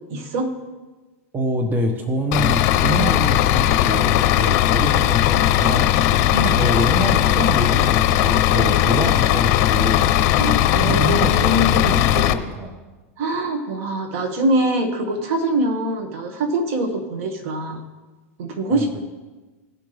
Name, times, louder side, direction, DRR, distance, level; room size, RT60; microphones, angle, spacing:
voice 1, 0.1-0.5 6.3-6.6 10.4-11.9 13.2-17.8 18.4-19.0, right 1 dB, 65° right, 4 dB, 2.0 m, -23 dB
voice 2, 1.3-5.9 6.4-10.1 10.8-12.8 18.7-19.0, right 1 dB, 25° right, 5 dB, 1.2 m, -26 dB
Bus / Idling, 2.3-12.3, left 12 dB, 55° left, 0.7 m, -18 dB
17.5 x 5.9 x 3.5 m, 1.2 s
hypercardioid pair, 115°, 8 cm